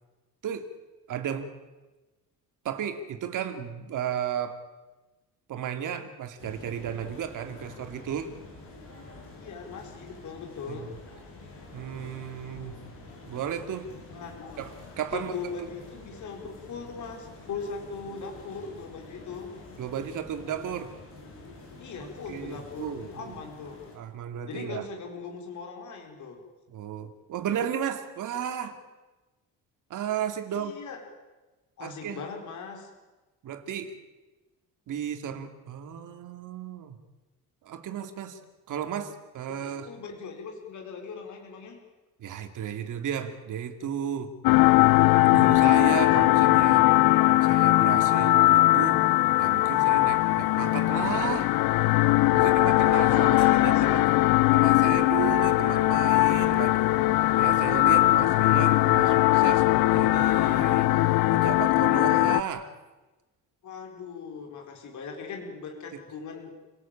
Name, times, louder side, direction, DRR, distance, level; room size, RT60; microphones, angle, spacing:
voice 1, 1.1-1.5 2.6-4.6 5.5-8.3 10.7-10.8 11.7-12.7 13.3-13.9 14.6-15.3 15.6-15.7 19.8-20.9 22.0-23.3 23.9-24.9 26.7-28.8 29.9-30.8 31.8-32.2 33.4-34.0 34.9-37.0 37.6-38.4 38.7-39.9 42.2-44.3 45.3-46.8 47.4-49.0 49.4-51.5 52.3-54.1 54.5-56.8 57.4-60.9 61.3-62.7, right 9 dB, 60° right, 7 dB, 2.8 m, -34 dB
sound 1, 6.4-24.0, left 3 dB, 40° left, 7.5 m, -47 dB
voice 2, 9.4-10.9 14.1-14.6 15.1-19.6 21.8-23.8 24.5-26.4 30.5-31.0 31.8-32.9 39.5-41.8 45.9-46.7 52.7-54.0 63.6-66.5, left 5 dB, 55° left, 2 dB, 4.4 m, -40 dB
sound 2, 44.4-62.4, left 18 dB, 80° left, 0.8 m, -20 dB
29.0 x 18.0 x 8.9 m, 1.1 s
cardioid pair, 170°, 35 cm